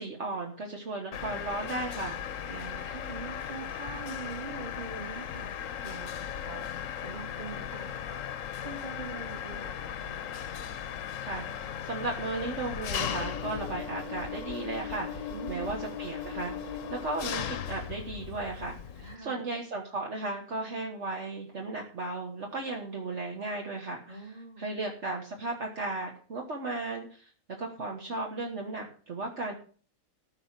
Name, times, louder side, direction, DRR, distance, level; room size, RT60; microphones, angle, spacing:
voice 1, 0.0-2.2 11.2-24.3 24.6-27.3 27.6-29.6, right 3 dB, 55° right, 1 dB, 1.7 m, -35 dB
Mechanisms, 1.1-19.2, left 8 dB, 70° left, 1.1 m, -37 dB
voice 2, 2.5-8.4 8.6-10.2 15.3-15.7 19.0-19.5 24.1-24.7, right 4 dB, 30° right, 2 dB, 2.6 m, -43 dB
14.5 x 5.2 x 7.4 m, 0.42 s
omnidirectional pair, 1.5 m